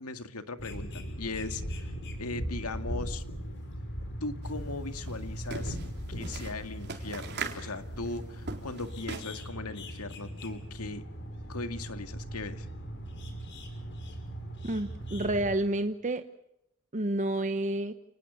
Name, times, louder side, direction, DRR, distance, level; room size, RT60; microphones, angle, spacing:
voice 1, 0.0-1.9 2.2-3.2 4.2-5.8 6.1-11.1 11.5-12.7, left 3 dB, 85° left, 8 dB, 2.1 m, -38 dB
sound 1, 0.6-15.5, equal, 55° left, 6.0 m, -39 dB
sound 2, 4.4-4.5 4.8-9.5, right 4 dB, 50° right, 4.0 m, -40 dB
voice 2, 14.6-16.2 16.9-17.9, right 1 dB, 35° right, 8 dB, 1.0 m, -29 dB
29.5 x 19.5 x 7.0 m, 0.82 s
head